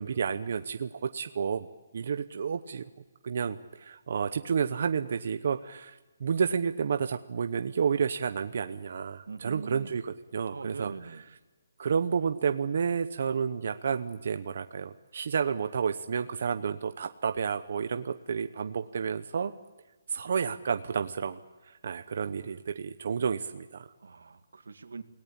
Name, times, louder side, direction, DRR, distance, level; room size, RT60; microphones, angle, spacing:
voice 1, 0.0-1.7 1.9-2.8 3.2-10.9 11.8-19.5 20.1-21.4 21.7-23.9, right 6 dB, 50° right, 8 dB, 0.9 m, -30 dB
voice 2, 9.3-10.0 10.5-11.2 24.0-25.0, right 4 dB, 90° right, 8 dB, 2.0 m, -42 dB
28.5 x 18.0 x 8.8 m, 1.2 s
hypercardioid pair, 175°, 0 cm